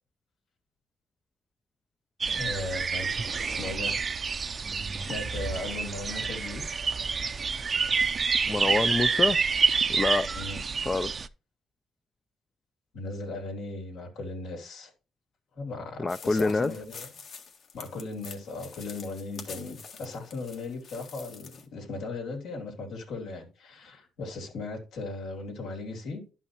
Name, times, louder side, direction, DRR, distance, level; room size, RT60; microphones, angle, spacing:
sound 1, 2.2-11.3, right 5 dB, 40° right, 0.5 m, -28 dB
voice 1, 2.3-3.1 3.4-4.1 5.0-6.7 10.3-10.6 12.9-14.9 15.5-17.1 17.7-26.2, left 3 dB, 85° left, 3.1 m, -37 dB
voice 2, 8.5-9.4 9.9-10.3 10.9-11.1 16.0-16.7, left 3 dB, 25° left, 0.3 m, -26 dB
sound 2, 16.1-21.6, left 5 dB, 65° left, 1.7 m, -46 dB
11.5 x 5.7 x 2.9 m
cardioid pair, 90°, 0 cm